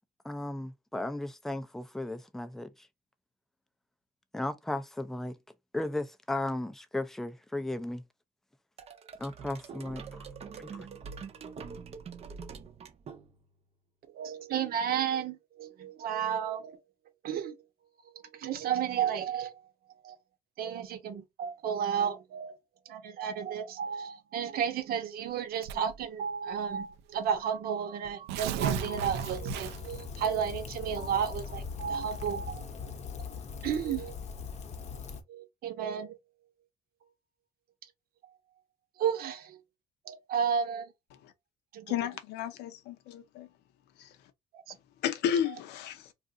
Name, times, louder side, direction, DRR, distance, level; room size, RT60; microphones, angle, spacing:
voice 1, 0.2-2.9 4.3-5.4 5.7-8.0 9.2-10.2 10.6-10.9, left 1 dB, ahead, 0.4 m, -35 dB
sound 1, 8.8-13.6, right 6 dB, 40° right, 0.6 m, -45 dB
voice 2, 14.1-16.8 17.2-17.5 18.3-19.6 20.0-20.2 20.6-22.6 22.9-32.6 33.6-34.1 35.3-36.2 39.0-39.6 40.1-40.9 41.7-41.9 44.7-44.8, right 8 dB, 60° right, 0.9 m, -32 dB
Tearing, 25.6-26.0 26.9-27.0 27.3-27.4 28.1-30.0, right 10 dB, 90° right, 0.5 m, -34 dB
Rain, 28.6-35.2, left 5 dB, 40° left, 0.7 m, -41 dB
voice 3, 41.9-43.5 44.0-44.1 45.0-46.1, left 9 dB, 85° left, 0.6 m, -32 dB
2.5 x 2.4 x 3.8 m
cardioid pair, 110°, 17 cm